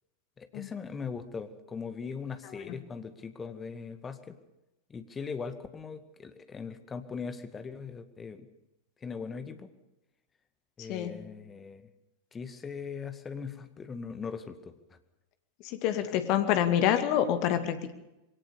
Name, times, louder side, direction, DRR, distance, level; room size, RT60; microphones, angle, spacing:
voice 1, 0.4-4.4 4.9-8.5 9.0-9.7 10.8-11.8 12.3-14.7, left 5 dB, 20° left, 9 dB, 2.0 m, -40 dB
voice 2, 10.8-11.2 15.6-17.9, left 10 dB, 45° left, 9 dB, 2.4 m, -27 dB
22.5 x 18.0 x 7.0 m, 0.94 s
figure-of-eight pair, 90°, 0 cm